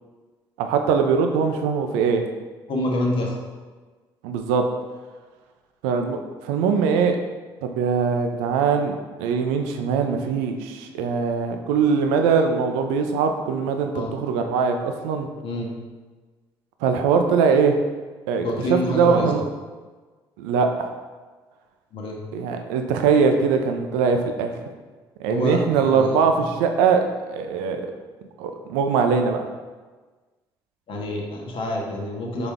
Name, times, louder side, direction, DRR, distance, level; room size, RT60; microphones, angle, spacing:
voice 1, 0.6-2.2 4.2-4.6 5.8-7.2 7.6-8.9 9.2-15.3 16.8-17.8 18.3-18.4 18.7-19.4 20.4-20.9 22.3-24.5 25.2-27.9 28.4-29.5, right 5 dB, 90° right, 5 dB, 0.4 m, -21 dB
voice 2, 2.7-3.4 13.9-14.1 15.4-15.7 18.4-19.4 21.9-22.2 25.3-26.5 30.9-32.5, left 1 dB, 60° left, 0 dB, 1.0 m, -27 dB
4.0 x 3.3 x 3.6 m, 1.3 s
supercardioid pair, 65°, 10 cm